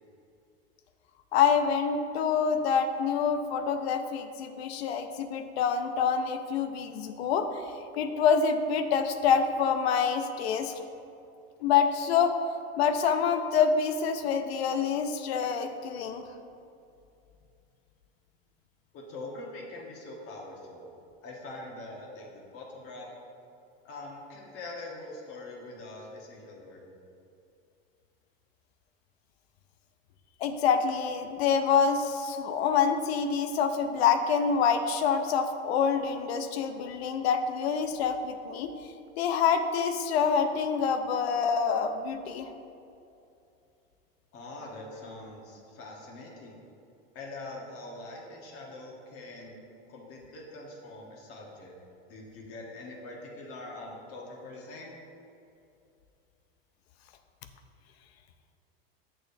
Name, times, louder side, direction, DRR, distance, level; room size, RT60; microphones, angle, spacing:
voice 1, 1.3-10.8 11.6-12.3 12.8-16.3 30.4-38.7 39.2-42.5, left 6 dB, 80° left, 8 dB, 0.5 m, -26 dB
voice 2, 18.9-20.9 21.2-23.1 23.8-26.9 44.3-46.6 47.1-49.6 49.9-51.7 52.1-55.0, left 2 dB, 45° left, -1 dB, 1.3 m, -43 dB
6.7 x 6.2 x 2.7 m, 2.6 s
supercardioid pair, 110°, 31 cm